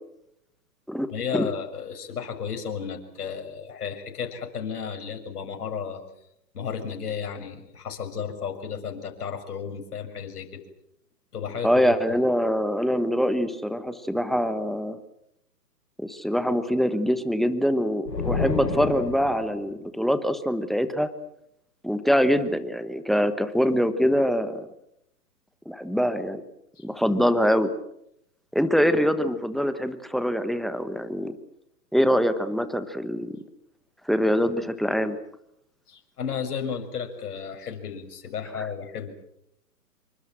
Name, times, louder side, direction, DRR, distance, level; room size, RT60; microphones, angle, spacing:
voice 1, 1.1-6.0 6.5-10.6 11.3-11.8 26.8-26.9 35.9-39.1, left 7 dB, 65° left, 5 dB, 6.6 m, -33 dB
voice 2, 11.6-15.0 16.0-21.1 21.8-24.7 25.7-26.4 26.8-27.7 28.5-31.3 31.9-33.3 34.1-35.2, equal, ahead, 12 dB, 1.1 m, -24 dB
sound 1, 18.1-19.7, left 4 dB, 90° left, 5.7 m, -29 dB
27.5 x 24.5 x 7.7 m, 0.78 s
hypercardioid pair, 135°, 48 cm